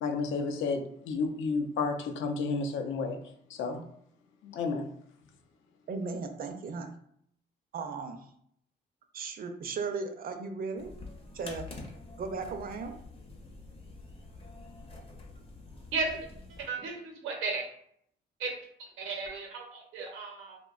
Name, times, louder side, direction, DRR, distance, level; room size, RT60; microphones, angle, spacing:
voice 1, 0.0-3.2 3.5-3.8 4.4-4.9, left 4 dB, 75° left, 4 dB, 0.5 m, -31 dB
voice 2, 5.9-6.9 7.7-8.3 9.1-10.9 11.3-11.7 12.2-12.9, right 4 dB, 50° right, 6 dB, 0.4 m, -36 dB
sound 1, 10.8-16.7, left 2 dB, 30° left, 0.5 m, -47 dB
voice 3, 16.5-17.7 18.4-18.5 18.8-20.6, right 4 dB, 85° right, 1 dB, 0.7 m, -35 dB
2.6 x 2.1 x 2.3 m, 0.68 s
cardioid pair, 90°, 20 cm